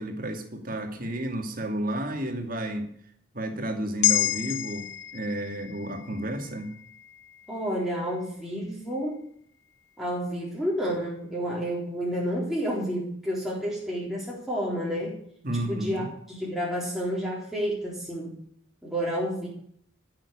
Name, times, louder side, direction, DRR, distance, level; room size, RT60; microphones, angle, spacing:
voice 1, 0.0-2.9 3.3-6.7 15.4-16.1, right 1 dB, 45° right, 5 dB, 2.4 m, -31 dB
sound 1, 4.0-8.5 8.9-9.1, left 14 dB, 80° left, 1.0 m, -31 dB
voice 2, 7.5-9.2 10.0-15.2 15.5-18.4 18.8-19.5, equal, ahead, -5 dB, 3.7 m, -30 dB
14.5 x 7.6 x 8.7 m, 0.64 s
head